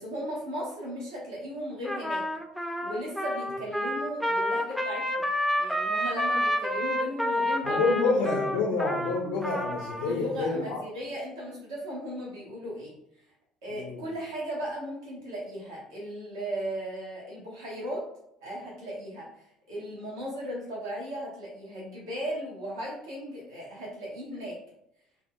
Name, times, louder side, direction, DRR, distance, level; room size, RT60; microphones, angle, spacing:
voice 1, 0.0-2.2 2.8-5.3 5.6-7.8 10.0-12.9 13.6-18.0 18.4-24.6, equal, 80° right, -5 dB, 0.9 m, -36 dB
Trumpet, 1.8-10.1, equal, ahead, 0.4 m, -29 dB
voice 2, 7.6-10.8 13.7-14.1, left 3 dB, 75° left, -2 dB, 0.4 m, -28 dB
4.1 x 2.0 x 2.2 m, 0.77 s
hypercardioid pair, 60°, 3 cm